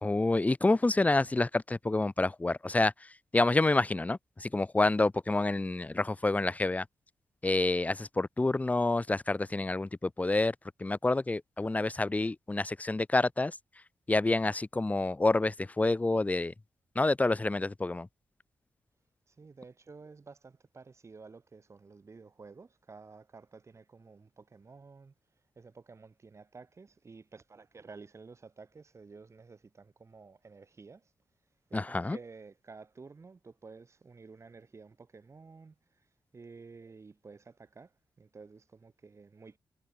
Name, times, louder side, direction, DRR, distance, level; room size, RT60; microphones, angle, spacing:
voice 1, 0.0-2.9 3.3-6.8 7.4-10.5 10.8-13.5 14.1-16.5 16.9-18.1 31.7-32.2, left 2 dB, 20° left, 1.0 m, -28 dB
voice 2, 19.3-25.1 25.6-31.1 31.7-36.1 36.3-39.6, right 4 dB, 40° right, 4.4 m, -52 dB
cardioid pair, 90°, 7 cm